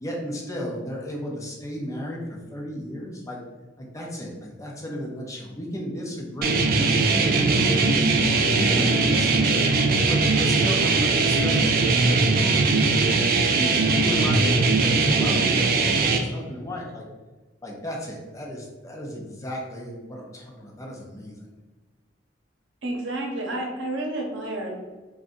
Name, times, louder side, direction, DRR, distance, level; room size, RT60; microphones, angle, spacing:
voice 1, 0.0-3.4 3.8-6.7 7.1-8.0 8.4-9.6 10.1-12.8 13.4-17.1 17.6-21.4, equal, 15° left, -2 dB, 0.5 m, -34 dB
sound 1, 6.4-16.2, right 3 dB, 50° right, 0.3 m, -20 dB
voice 2, 22.8-24.7, right 1 dB, 80° right, 0 dB, 0.7 m, -30 dB
2.6 x 2.3 x 3.7 m, 1.2 s
head